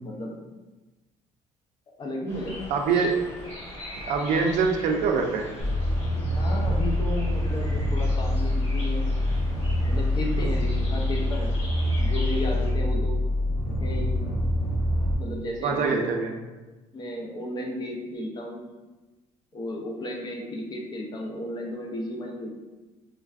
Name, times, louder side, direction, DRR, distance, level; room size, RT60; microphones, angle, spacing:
voice 1, 0.0-0.3 2.0-3.1 6.3-9.1 9.9-11.6 12.0-13.2 13.8-14.2 15.2-16.0 16.9-18.7 19.5-22.5, left 1 dB, 30° left, 0 dB, 0.5 m, -34 dB
sound 1, 2.3-12.7, left 1 dB, 50° left, 1.3 m, -41 dB
voice 2, 2.7-3.1 4.1-5.5 10.4-10.6 15.6-16.4, right 5 dB, 65° right, 3 dB, 0.4 m, -24 dB
sound 2, 5.6-15.1, left 1 dB, 65° left, 0.7 m, -25 dB
3.1 x 2.5 x 2.3 m, 1.2 s
cardioid pair, 140°, 13 cm